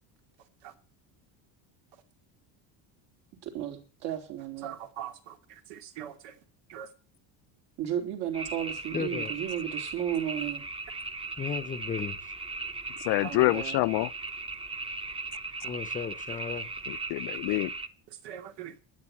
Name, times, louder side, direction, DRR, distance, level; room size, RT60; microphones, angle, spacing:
voice 1, 3.4-4.7 7.8-10.6 13.2-13.8, right 10 dB, 65° right, 4.1 m, -34 dB
voice 2, 4.6-6.4 6.7-6.9 18.1-18.8, right 10 dB, 85° right, 2.6 m, -42 dB
sound 1, 8.3-17.9, right 3 dB, 15° right, 0.8 m, -37 dB
voice 3, 8.9-9.3 11.4-12.3 15.6-16.7, left 6 dB, 20° left, 0.7 m, -35 dB
voice 4, 13.0-14.1 15.6-15.7 16.9-17.7, left 22 dB, 70° left, 0.6 m, -27 dB
12.5 x 9.7 x 8.3 m
cardioid pair, 165°, 42 cm